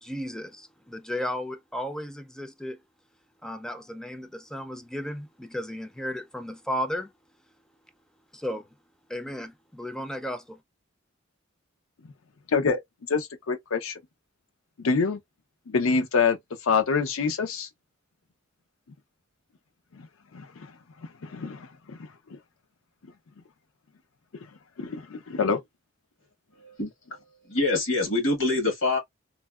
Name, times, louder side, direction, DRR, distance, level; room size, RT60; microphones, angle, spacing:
voice 1, 0.0-2.8 3.4-7.1 8.3-8.7 9.1-10.6, equal, 5° left, 0.3 m, -34 dB
voice 2, 13.1-13.9 14.8-15.2 15.7-16.4 16.6-17.7 19.9-20.0 20.3-20.7 21.2-22.0 24.8-25.6, left 5 dB, 90° left, 0.6 m, -26 dB
voice 3, 27.5-29.0, left 2 dB, 70° left, 1.4 m, -24 dB
3.2 x 2.2 x 2.3 m
head